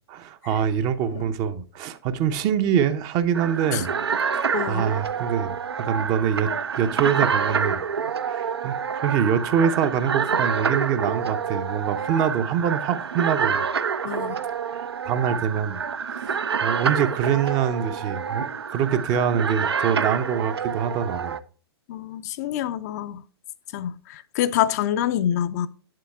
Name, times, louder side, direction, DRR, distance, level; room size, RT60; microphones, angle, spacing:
voice 1, 0.1-3.9 4.3-7.8 8.3-13.6 14.7-15.8 16.1-21.4, right 8 dB, 30° right, 0.6 m, -25 dB
sound 1, 3.3-21.4, right 6 dB, 75° right, 0.5 m, -27 dB
voice 2, 4.5-4.8 14.0-14.4 21.9-23.2 23.7-25.7, left 11 dB, 40° left, 0.4 m, -26 dB
8.4 x 7.5 x 2.3 m
figure-of-eight pair, 110°, 14 cm